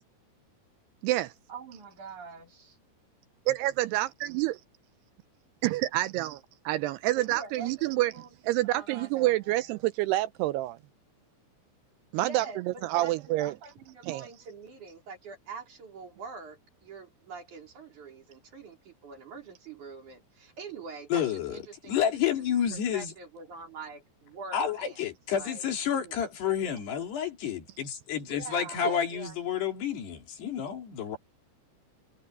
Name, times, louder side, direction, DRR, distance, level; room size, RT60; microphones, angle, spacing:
voice 1, 1.5-2.8 7.2-9.6 12.1-25.0 25.3-25.6 25.9-26.2 28.3-29.3, right 4 dB, 45° right, 5.0 m, -45 dB
voice 2, 3.5-4.6 5.6-8.1 8.4-10.8 12.1-12.5 12.8-13.5 14.1-14.3, right 16 dB, 80° right, 2.5 m, -28 dB
voice 3, 21.1-23.1 24.5-31.2, left 8 dB, 70° left, 5.2 m, -30 dB
omnidirectional pair, 4.9 m